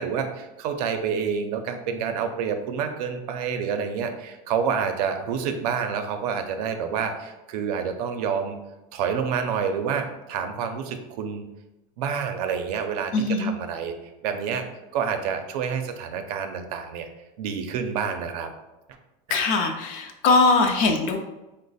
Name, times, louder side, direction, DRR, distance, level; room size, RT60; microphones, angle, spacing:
voice 1, 0.0-8.6 8.9-11.4 12.0-13.9 14.2-14.7 14.9-17.1 17.4-18.5 19.3-19.4, right 6 dB, 90° right, 6 dB, 0.5 m, -28 dB
voice 2, 13.1-13.5 19.3-21.2, left 3 dB, 45° left, 4 dB, 0.4 m, -21 dB
3.1 x 2.0 x 3.9 m, 1.0 s
cardioid pair, 165°, 19 cm